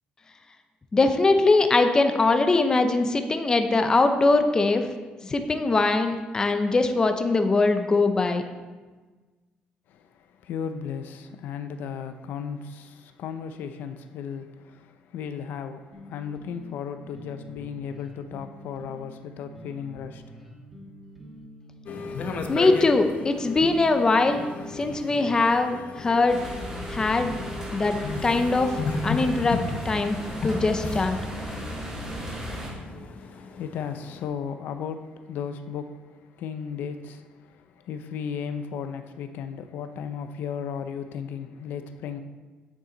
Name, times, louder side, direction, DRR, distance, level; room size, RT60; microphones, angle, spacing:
voice 1, 0.9-4.9 5.2-8.4 22.5-26.4 26.9-27.3 27.7-28.0 28.2-28.7 29.0-31.2, left 3 dB, 20° left, 0.6 m, -22 dB
voice 2, 9.9-20.4 33.2-42.2, left 7 dB, 75° left, 0.5 m, -35 dB
sound 1, 15.9-25.5, right 1 dB, 5° right, 1.3 m, -46 dB
sound 2, 21.9-34.2, left 4 dB, 50° left, 0.8 m, -35 dB
sound 3, 26.3-32.7, equal, 20° right, 2.8 m, -35 dB
8.6 x 7.3 x 3.9 m
cardioid pair, 135°, 3 cm